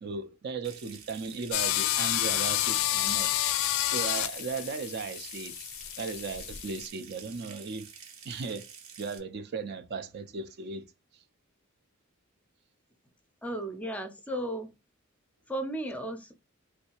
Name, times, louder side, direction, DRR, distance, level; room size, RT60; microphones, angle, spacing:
voice 1, 0.0-3.3 3.8-5.6 6.0-7.9 8.3-8.6 9.0-10.9 11.1-11.2, right 4 dB, 50° right, 0.4 m, -36 dB
Water tap faucet / Sink (filling or washing) / Trickle dribble, 0.6-9.2, right 7 dB, 70° right, 0.8 m, -49 dB
sound 1, 1.5-6.9, left 13 dB, 75° left, 0.4 m, -30 dB
voice 2, 13.4-14.7 15.5-16.3, right 1 dB, 5° left, 0.5 m, -34 dB
3.2 x 2.7 x 2.8 m
head